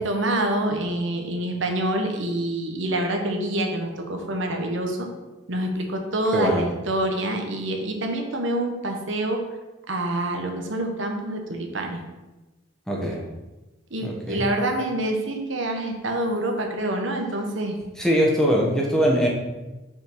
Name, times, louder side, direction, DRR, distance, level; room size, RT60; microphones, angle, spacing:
voice 1, 0.0-5.1 5.5-9.4 9.9-12.0 13.9-17.8, right 1 dB, 70° right, 3 dB, 1.1 m, -26 dB
voice 2, 6.3-6.7 12.9-13.2 14.0-14.5 18.0-19.3, equal, 5° left, -2 dB, 1.2 m, -22 dB
6.0 x 4.9 x 6.1 m, 1.1 s
head